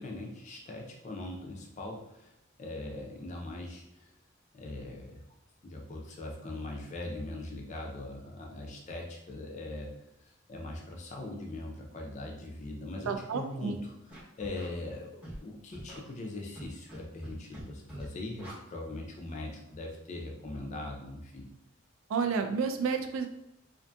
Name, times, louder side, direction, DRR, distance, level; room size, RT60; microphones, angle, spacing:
voice 1, 0.0-2.3 2.6-4.1 4.5-5.2 5.6-9.9 10.2-21.5, left 2 dB, 35° left, 0 dB, 0.4 m, -41 dB
voice 2, 13.1-13.8 22.1-23.3, right 5 dB, 80° right, 6 dB, 0.3 m, -30 dB
Scratching (performance technique), 14.1-14.7 15.2-15.4 15.7-16.0 16.6-17.0 17.2-17.6 17.9-18.0 18.4-18.5, equal, 5° right, 0.7 m, -44 dB
2.5 x 2.5 x 2.2 m, 0.83 s
head